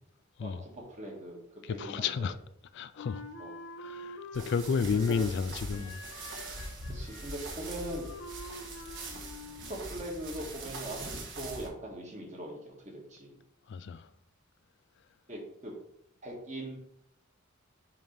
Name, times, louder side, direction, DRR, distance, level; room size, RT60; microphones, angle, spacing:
voice 1, 0.4-2.3 3.4-3.5 5.1-5.3 5.7-5.9 6.9-8.1 9.7-11.1 11.4-13.4 15.3-15.7 16.2-16.8, right 1 dB, 35° right, 1.6 m, -41 dB
voice 2, 1.6-2.4 2.7-3.2 3.8-6.0 6.3-6.6 13.7-14.1, left 5 dB, 60° left, 0.3 m, -32 dB
Wind instrument woodwind instrument, 3.0-5.4 5.7-9.8, left 2 dB, 75° left, 0.9 m, -47 dB
sound 1, 4.3-11.7, right 2 dB, 60° right, 1.4 m, -42 dB
7.2 x 2.9 x 5.2 m
head